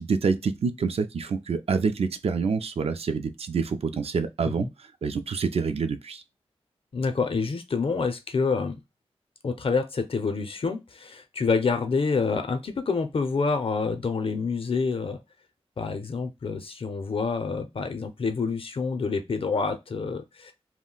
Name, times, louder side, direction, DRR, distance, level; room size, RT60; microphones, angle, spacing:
voice 1, 0.0-4.7 5.0-6.2, right 5 dB, 65° right, 0.4 m, -27 dB
voice 2, 6.9-8.8 9.4-15.2 15.8-20.5, left 4 dB, 55° left, 0.5 m, -27 dB
2.4 x 2.1 x 3.7 m
wide cardioid pair, 70°, 11 cm